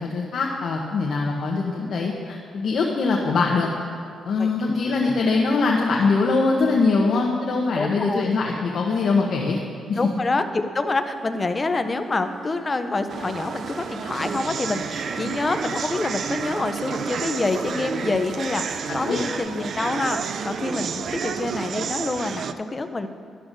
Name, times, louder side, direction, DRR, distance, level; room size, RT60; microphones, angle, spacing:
voice 1, 0.0-3.7 4.2-9.6 9.9-10.0 18.9-19.2, left 4 dB, 60° left, -1 dB, 0.8 m, -22 dB
voice 2, 7.7-8.3 9.9-23.1, left 3 dB, 25° left, 8 dB, 0.5 m, -27 dB
sound 1, 10.9-19.4, right 2 dB, 90° right, 1.9 m, -42 dB
sound 2, 13.1-22.5, right 6 dB, 50° right, 0.3 m, -30 dB
12.5 x 11.0 x 2.6 m, 2.3 s
cardioid pair, 145°, 0 cm